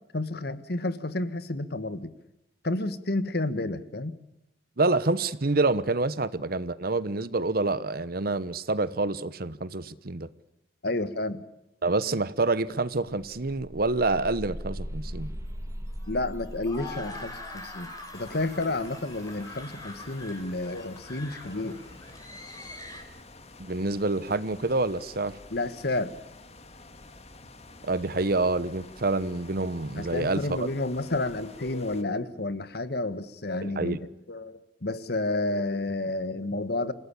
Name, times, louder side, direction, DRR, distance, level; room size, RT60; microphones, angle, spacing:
voice 1, 0.1-2.1 2.6-4.2 10.8-11.4 16.1-21.8 25.5-26.1 30.0-34.0 34.3-36.9, left 2 dB, 60° left, 13 dB, 1.6 m, -30 dB
voice 2, 4.8-10.3 11.8-15.3 23.6-25.3 27.8-30.6 33.6-34.0, right 3 dB, 55° right, 16 dB, 1.1 m, -27 dB
sound 1, 12.4-12.5 12.8-19.6, equal, 15° right, 2.2 m, -40 dB
sound 2, 15.0-23.0, left 2 dB, 20° left, 5.6 m, -44 dB
sound 3, 18.1-32.0, left 2 dB, 35° left, 2.0 m, -49 dB
28.0 x 17.5 x 8.5 m, 0.87 s
head